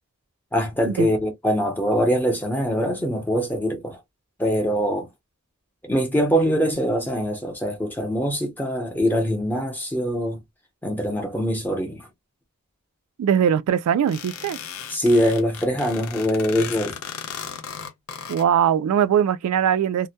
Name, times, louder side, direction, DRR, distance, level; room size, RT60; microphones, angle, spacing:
voice 1, 0.5-4.0 4.4-5.1 5.8-10.4 10.8-12.0 14.9-16.9, equal, 10° left, 0.7 m, -23 dB
voice 2, 13.2-14.6 18.3-20.1, right 8 dB, 85° right, 0.3 m, -21 dB
sound 1, 14.1-18.4, left 7 dB, 70° left, 0.5 m, -36 dB
2.2 x 2.1 x 2.7 m
head